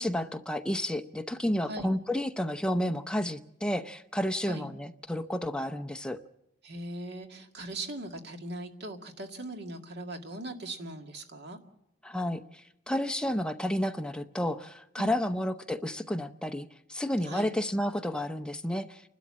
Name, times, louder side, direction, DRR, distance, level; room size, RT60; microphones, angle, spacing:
voice 1, 0.0-6.2 12.0-12.4 12.9-19.0, left 1 dB, 5° left, 8 dB, 0.7 m, -31 dB
voice 2, 6.6-11.6 15.0-15.1 17.2-17.5, right 1 dB, 60° right, 4 dB, 2.0 m, -40 dB
29.5 x 12.5 x 7.4 m, 0.84 s
head